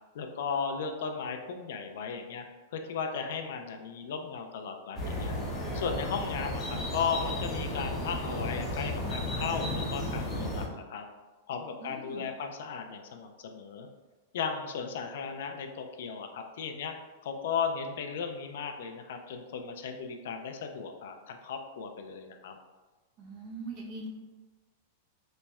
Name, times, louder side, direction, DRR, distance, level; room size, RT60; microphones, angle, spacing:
voice 1, 0.1-2.5 2.7-5.4 5.7-11.0 11.5-13.9 14.3-16.9 17.2-22.6, left 6 dB, 65° left, 5 dB, 0.4 m, -36 dB
sound 1, 5.0-10.7, left 1 dB, 15° left, 0.7 m, -33 dB
voice 2, 11.8-12.3 23.2-24.1, right 3 dB, 35° right, -1 dB, 0.7 m, -41 dB
4.1 x 3.0 x 2.3 m, 1.2 s
supercardioid pair, 165°, 0 cm